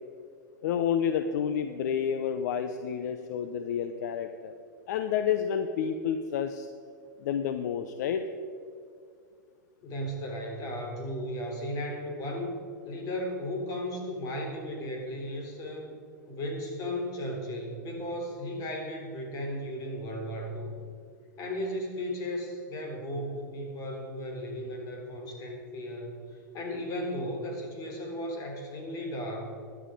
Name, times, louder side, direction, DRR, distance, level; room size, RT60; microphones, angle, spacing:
voice 1, 0.6-4.5 4.9-6.7 7.2-8.2, left 8 dB, 65° left, 9 dB, 0.8 m, -29 dB
voice 2, 9.8-12.6 12.8-16.0 16.3-20.8 21.4-29.6, equal, 35° left, 1 dB, 4.0 m, -35 dB
15.5 x 11.0 x 5.1 m, 2.3 s
hypercardioid pair, 115°, 10 cm